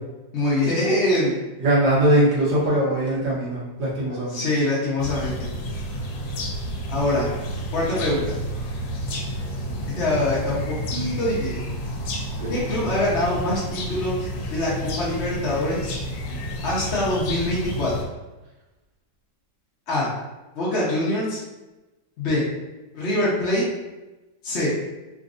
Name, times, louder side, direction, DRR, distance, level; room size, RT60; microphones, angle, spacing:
voice 1, 0.3-1.4 4.3-5.5 6.9-7.3 7.7-8.4 10.0-11.6 12.5-15.9 16.6-18.0 19.9-20.1 20.5-21.4 22.2-22.4 22.9-23.6 24.4-24.7, left 1 dB, 50° left, -7 dB, 0.9 m, -24 dB
voice 2, 1.6-4.4 12.4-12.5, right 1 dB, 65° right, -8 dB, 1.7 m, -21 dB
sound 1, 5.0-18.0, equal, 85° left, 1.3 m, -30 dB
3.9 x 2.4 x 2.5 m, 1.1 s
omnidirectional pair, 1.9 m